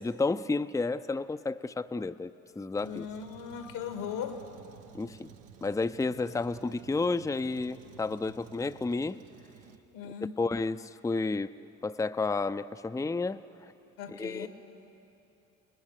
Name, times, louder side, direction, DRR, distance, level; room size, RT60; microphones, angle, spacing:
voice 1, 0.0-2.3 2.6-3.1 4.9-5.3 5.6-9.2 10.0-11.5 11.8-13.4 14.1-14.5, left 3 dB, 10° left, 11 dB, 0.6 m, -31 dB
Truck, 2.7-9.8, right 6 dB, 80° right, 1.2 m, -53 dB
voice 2, 2.8-4.5 9.9-10.3 14.0-14.5, left 8 dB, 80° left, 6 dB, 2.0 m, -38 dB
30.0 x 20.0 x 6.6 m, 2.8 s
hypercardioid pair, 50°, 40 cm